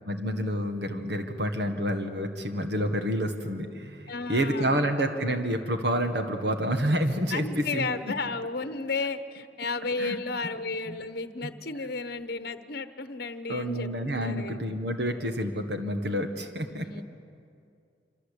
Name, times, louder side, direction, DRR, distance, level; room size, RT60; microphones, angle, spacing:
voice 1, 0.0-7.9 10.0-10.2 10.9-11.0 11.4-11.5 13.5-16.9, equal, 55° right, 5 dB, 1.7 m, -29 dB
voice 2, 4.1-4.8 7.3-14.6 16.5-17.0, left 3 dB, 55° left, 10 dB, 1.0 m, -33 dB
26.5 x 26.0 x 8.4 m, 2.4 s
head